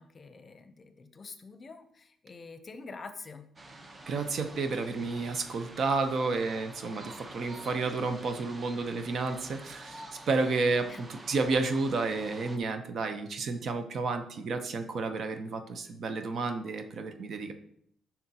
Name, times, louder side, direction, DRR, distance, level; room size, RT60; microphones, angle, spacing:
voice 1, 0.0-3.5 10.9-11.0, left 4 dB, 35° left, 8 dB, 0.7 m, -46 dB
sound 1, 3.6-12.6, right 2 dB, 25° right, 0.9 m, -48 dB
voice 2, 4.1-17.5, right 3 dB, 60° right, 7 dB, 0.8 m, -31 dB
9.1 x 5.8 x 2.9 m, 0.70 s
cardioid pair, 90°, 0 cm